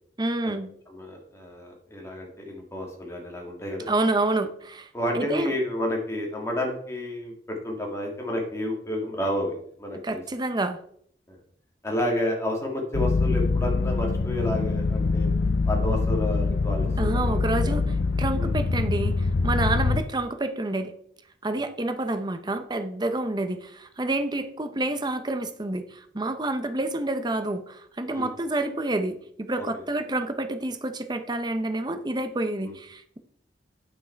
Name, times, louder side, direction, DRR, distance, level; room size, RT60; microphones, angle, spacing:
voice 1, 0.2-0.7 3.9-4.9 5.1-5.6 10.0-10.8 17.0-20.9 21.4-33.2, right 2 dB, 25° right, 9 dB, 0.8 m, -28 dB
voice 2, 0.9-3.9 4.9-10.2 11.3-11.4 11.8-15.3 15.7-17.8 18.4-18.5 28.1-28.3 29.6-29.7 32.6-32.7, left 1 dB, 15° left, 0 dB, 2.2 m, -30 dB
sound 1, 12.9-20.0, left 3 dB, 80° left, 0.5 m, -24 dB
8.8 x 6.1 x 4.5 m, 0.64 s
head